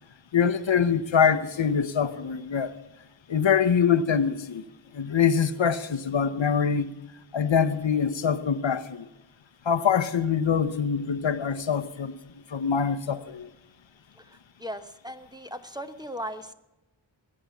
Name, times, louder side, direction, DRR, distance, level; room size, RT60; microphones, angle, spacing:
voice 1, 0.3-2.7 3.3-4.6 4.9-6.9 7.3-9.1 9.7-12.2 12.5-13.5, left 7 dB, 75° left, 0.9 m, -24 dB
voice 2, 14.2-16.5, equal, 10° right, 1.0 m, -38 dB
20.0 x 8.9 x 7.1 m
wide cardioid pair, 80°, 46 cm